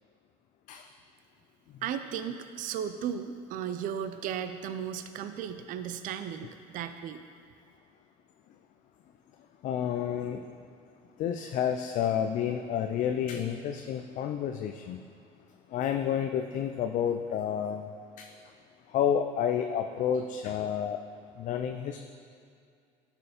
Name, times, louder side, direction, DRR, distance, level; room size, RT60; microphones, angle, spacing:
voice 1, 1.8-7.2, right 8 dB, 55° right, 9 dB, 0.5 m, -35 dB
voice 2, 9.6-10.6 11.2-15.0 15.7-17.9 18.2-18.5 18.9-21.0 21.4-22.0, left 8 dB, 50° left, 6 dB, 0.5 m, -30 dB
11.0 x 4.5 x 5.1 m, 2.4 s
supercardioid pair, 90°, 16 cm